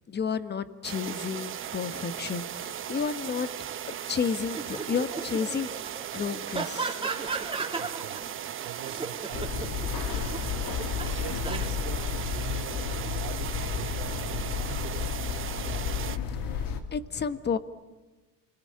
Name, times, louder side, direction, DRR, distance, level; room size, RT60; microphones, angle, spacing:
voice 1, 0.1-3.5 3.9-5.7 6.1-7.0 16.4-16.6 16.9-17.6, left 6 dB, 25° left, 12 dB, 1.3 m, -31 dB
sound 1, 0.8-16.2, right 10 dB, 35° right, 0.9 m, -37 dB
sound 2, 4.5-8.2 8.6-11.7, right 4 dB, 15° right, 3.0 m, -36 dB
voice 2, 7.8-15.1 15.5-16.0, right 10 dB, 75° right, 7 dB, 3.0 m, -44 dB
sound 3, 9.3-16.8, left 7 dB, 65° left, 2.8 m, -32 dB
28.5 x 21.5 x 8.7 m, 1.2 s
cardioid pair, 130°, 37 cm